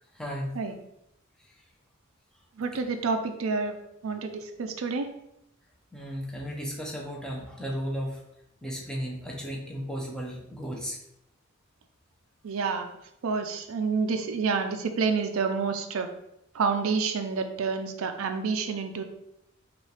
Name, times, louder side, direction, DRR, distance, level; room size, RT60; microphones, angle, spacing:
voice 1, 0.1-0.6 1.4-1.6 5.9-8.2 8.6-11.0, equal, 5° left, -1 dB, 0.7 m, -35 dB
voice 2, 2.6-3.8 4.0-5.1 12.4-12.9 13.2-16.1 16.5-19.0, right 5 dB, 70° right, 6 dB, 0.4 m, -28 dB
5.4 x 2.5 x 3.2 m, 0.81 s
head